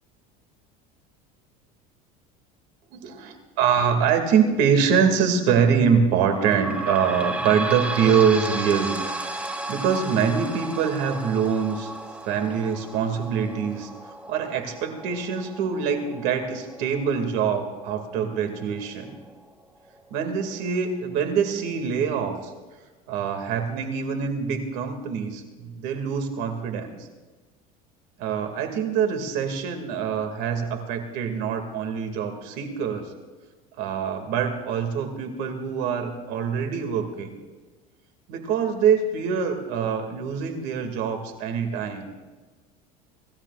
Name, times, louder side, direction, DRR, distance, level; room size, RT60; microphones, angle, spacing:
voice 1, 2.9-8.9 9.2-11.9 12.2-13.9 14.3-19.2 20.1-22.5 23.1-27.0 28.2-33.1 33.8-37.4 38.3-42.0, right 7 dB, 65° right, 5 dB, 2.4 m, -24 dB
sound 1, 6.2-19.4 19.9-20.0 20.3-20.4 21.2-21.3, right 2 dB, 5° right, 0.9 m, -34 dB
27.0 x 13.5 x 2.5 m, 1.3 s
cardioid pair, 135°, 18 cm